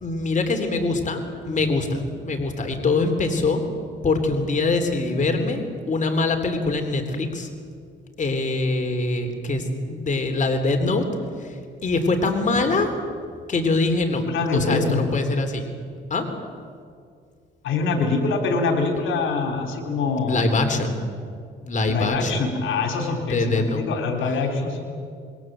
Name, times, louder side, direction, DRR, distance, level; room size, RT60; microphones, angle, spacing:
voice 1, 0.0-3.6 4.0-7.5 8.2-11.1 11.4-12.9 13.5-15.7 16.1-16.3 20.3-21.0 21.6-22.5 23.3-23.9, left 3 dB, 40° left, 5 dB, 3.5 m, -23 dB
voice 2, 14.3-15.1 17.6-20.5 21.9-24.8, left 4 dB, 80° left, 4 dB, 3.6 m, -24 dB
27.0 x 22.0 x 7.7 m, 2.2 s
cardioid pair, 90°, 20 cm